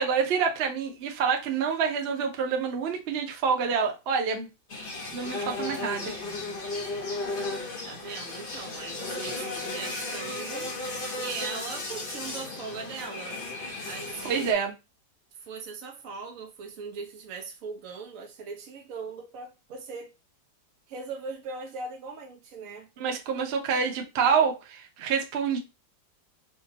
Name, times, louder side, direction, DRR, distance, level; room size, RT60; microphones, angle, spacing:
voice 1, 0.0-4.5 5.1-6.2 14.2-14.7 23.0-25.6, right 6 dB, 80° right, 0.5 m, -27 dB
sound 1, 4.7-14.5, left 2 dB, 45° left, 0.7 m, -35 dB
voice 2, 7.8-10.7 11.1-13.4 13.8-14.5 15.3-20.1 20.9-22.9, right 4 dB, 55° right, 1.1 m, -39 dB
4.9 x 2.2 x 2.7 m
omnidirectional pair, 2.0 m